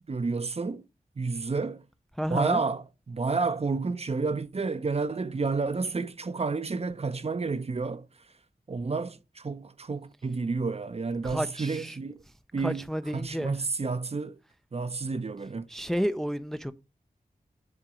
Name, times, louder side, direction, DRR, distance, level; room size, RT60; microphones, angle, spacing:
voice 1, 0.1-0.8 1.2-1.8 2.3-8.1 8.7-12.2 12.5-12.8 13.1-14.4 14.7-15.7, right 4 dB, 45° right, 0.6 m, -30 dB
voice 2, 2.2-2.6 11.2-12.0 12.6-13.6 15.7-16.7, equal, 5° left, 0.4 m, -31 dB
7.5 x 2.9 x 4.9 m
cardioid pair, 50°, 15 cm